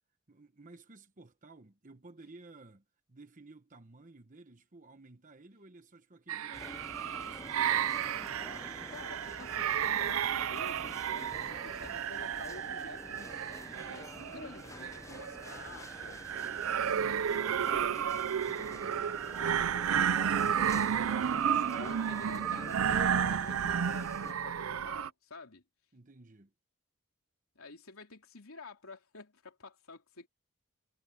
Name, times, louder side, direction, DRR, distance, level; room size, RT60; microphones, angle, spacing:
voice 1, 0.3-7.7 25.9-26.5, right 3 dB, 35° right, 1.1 m, -55 dB
sound 1, 6.3-25.1, right 8 dB, 75° right, 0.5 m, -32 dB
sound 2, 6.5-24.3, left 1 dB, 15° left, 0.7 m, -48 dB
voice 2, 8.9-13.4 13.8-19.2 19.7-20.6 21.3-25.6 27.5-30.3, left 3 dB, 80° left, 3.3 m, -50 dB
head